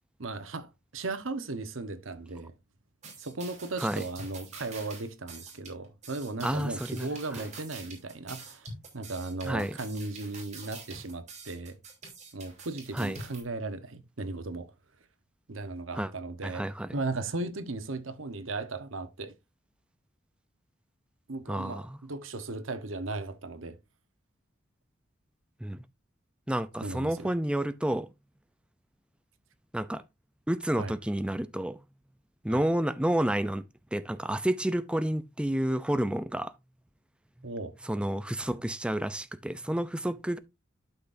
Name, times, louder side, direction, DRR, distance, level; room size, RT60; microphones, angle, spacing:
voice 1, 0.2-2.5 3.2-8.7 8.9-11.8 12.3-14.7 15.5-16.7 16.9-19.3 21.3-23.8 26.8-27.3 30.8-30.9 32.5-32.6 37.4-37.7, right 3 dB, 85° right, 1.1 m, -36 dB
sound 1, 3.0-13.4, right 3 dB, 35° right, 3.2 m, -46 dB
voice 2, 6.4-7.1 9.5-9.8 12.9-13.2 15.9-16.1 16.4-16.9 21.5-22.0 25.6-25.8 26.5-28.1 29.7-30.0 30.5-31.8 32.4-33.6 33.9-36.5 37.9-40.4, right 1 dB, 5° right, 0.4 m, -30 dB
12.0 x 5.8 x 2.6 m
head